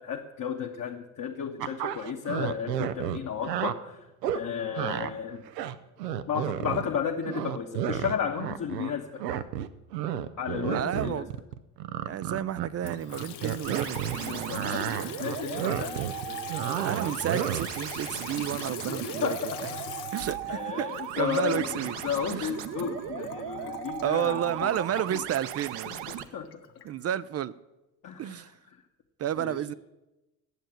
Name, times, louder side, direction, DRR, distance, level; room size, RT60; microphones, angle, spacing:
voice 1, 0.0-4.1 4.3-5.4 6.3-9.2 10.4-11.3 14.2-16.8 18.9-19.8 20.5-24.7 25.1-25.2 25.9-26.5 28.0-28.4 28.7-28.8 29.4-29.6, left 7 dB, 40° left, 1.2 m, -33 dB
sound 1, 1.6-3.7 4.2-4.4 4.8-5.1 5.5-7.0 7.3-8.9 9.2-14.2 14.5-17.8, right 10 dB, 90° right, 0.6 m, -31 dB
voice 2, 10.7-11.3 12.1-15.1 16.8-19.4 19.6-19.7 20.1-22.0 22.3-22.5 24.0-25.9 26.8-27.5 28.2-28.5 29.2-29.7, right 10 dB, 35° right, 0.4 m, -31 dB
Water tap faucet / Sink (filling or washing) / Trickle dribble, 12.8-26.9, left 11 dB, 60° left, 1.0 m, -42 dB
sound 2, 13.6-26.2, right 11 dB, 60° right, 0.9 m, -37 dB
9.3 x 7.6 x 8.9 m
hypercardioid pair, 55°, 47 cm